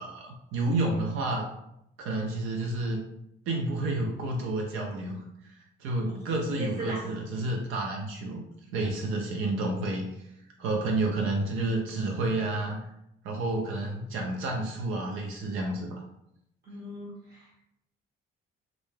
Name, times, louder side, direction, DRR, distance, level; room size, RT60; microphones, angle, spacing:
voice 1, 0.0-1.5 2.0-3.0 3.5-8.4 8.7-10.3 10.6-12.8 13.2-16.0, right 2 dB, 90° right, 0 dB, 0.4 m, -30 dB
voice 2, 6.6-7.0 16.6-17.7, right 2 dB, 50° right, -3 dB, 0.8 m, -38 dB
2.4 x 2.2 x 3.2 m, 0.80 s
cardioid pair, 90°, 20 cm